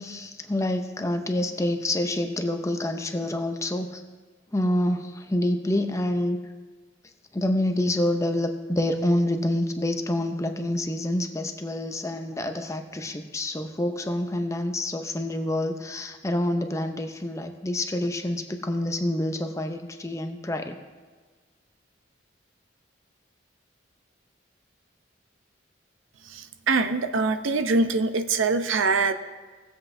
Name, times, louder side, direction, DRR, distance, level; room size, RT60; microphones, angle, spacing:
voice 1, 0.0-4.0 4.5-6.4 7.3-20.7, left 1 dB, 15° left, 6 dB, 0.5 m, -27 dB
voice 2, 26.3-29.1, right 3 dB, 85° right, 9 dB, 0.6 m, -24 dB
18.5 x 7.7 x 2.6 m, 1.4 s
head